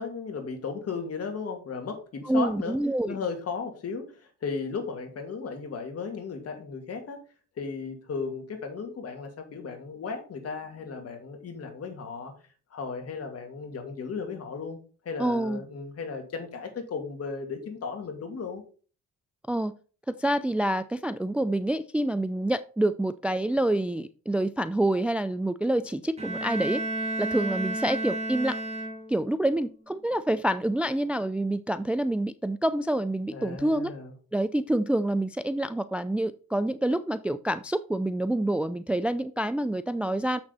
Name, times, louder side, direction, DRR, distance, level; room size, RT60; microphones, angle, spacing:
voice 1, 0.0-2.7 3.0-7.2 7.6-12.3 12.7-14.8 15.0-18.6 33.3-34.1, left 5 dB, 55° left, 3 dB, 2.5 m, -35 dB
voice 2, 2.2-3.2 15.2-15.6 19.5-19.7 20.1-26.8 27.2-28.6 29.1-33.9 34.3-40.4, right 1 dB, 5° right, 13 dB, 0.3 m, -27 dB
Bowed string instrument, 26.2-29.4, right 2 dB, 20° right, 1.9 m, -32 dB
7.1 x 6.2 x 4.1 m, 0.38 s
cardioid pair, 90°, 30 cm